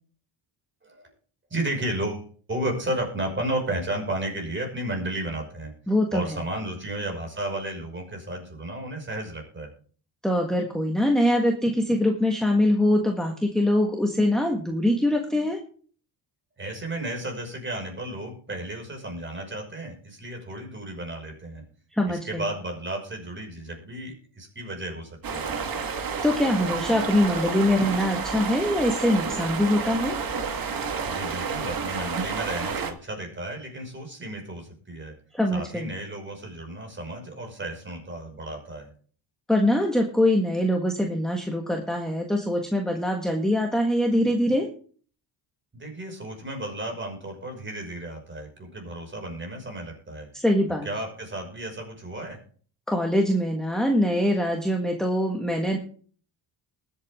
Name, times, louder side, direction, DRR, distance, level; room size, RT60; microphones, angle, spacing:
voice 1, 1.5-5.7 6.1-9.7 16.6-21.6 22.1-25.5 31.0-35.1 35.5-38.9 45.7-50.3 50.8-52.4, right 1 dB, 25° right, 2 dB, 5.9 m, -33 dB
voice 2, 5.9-6.4 10.2-15.6 21.9-22.4 26.2-30.2 35.3-35.9 39.5-44.7 50.3-50.9 52.9-55.8, left 1 dB, ahead, 1 dB, 1.6 m, -23 dB
sound 1, 25.2-32.9, right 5 dB, 50° right, 1.9 m, -30 dB
21.0 x 8.4 x 3.7 m, 0.43 s
cardioid pair, 135°, 45 cm